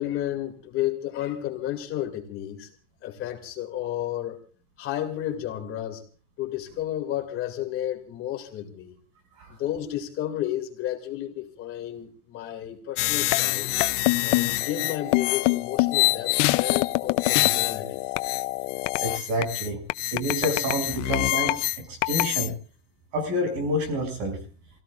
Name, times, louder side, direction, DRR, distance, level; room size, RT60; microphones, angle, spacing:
voice 1, 0.0-2.7 3.0-4.4 4.8-6.0 6.4-9.0 9.5-13.7 14.2-18.0, left 12 dB, 35° left, 3 dB, 2.5 m, -32 dB
sound 1, 13.0-22.5, left 21 dB, 75° left, 0.7 m, -24 dB
voice 2, 19.0-21.5 22.1-22.5 23.1-24.4, equal, 60° right, 6 dB, 6.6 m, -28 dB
29.0 x 17.0 x 2.4 m, 0.39 s
cardioid pair, 175°, 37 cm